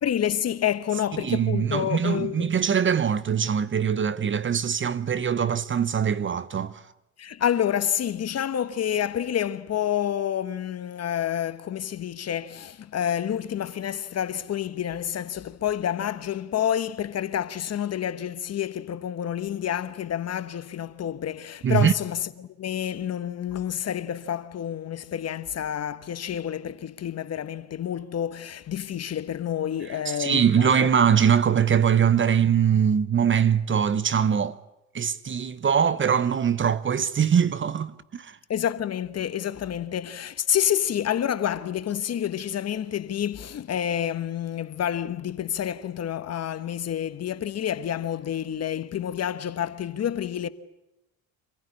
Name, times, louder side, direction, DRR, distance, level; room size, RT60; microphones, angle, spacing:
voice 1, 0.0-2.5 7.2-30.9 38.5-50.5, left 10 dB, 40° left, 1.2 m, -28 dB
voice 2, 1.2-6.8 21.6-21.9 30.1-34.6 34.9-38.4, right 8 dB, 30° right, 1.0 m, -22 dB
26.0 x 15.5 x 9.8 m
hypercardioid pair, 75°, 38 cm